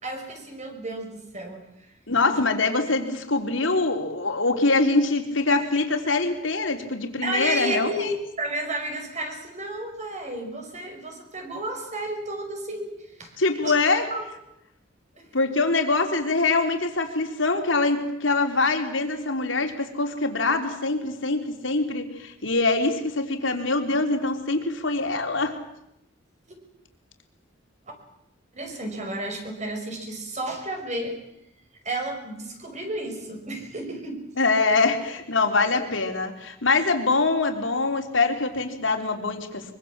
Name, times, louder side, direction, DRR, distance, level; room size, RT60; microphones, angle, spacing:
voice 1, 0.0-1.7 2.3-2.4 7.2-13.3 13.6-13.7 14.1-14.2 15.2-15.3 28.5-31.2 31.8-34.2, right 1 dB, 40° right, 4 dB, 5.6 m, -32 dB
voice 2, 2.1-8.1 13.4-14.1 15.3-25.6 34.4-39.7, left 3 dB, 90° left, 5 dB, 3.5 m, -24 dB
24.0 x 23.5 x 7.4 m, 0.82 s
head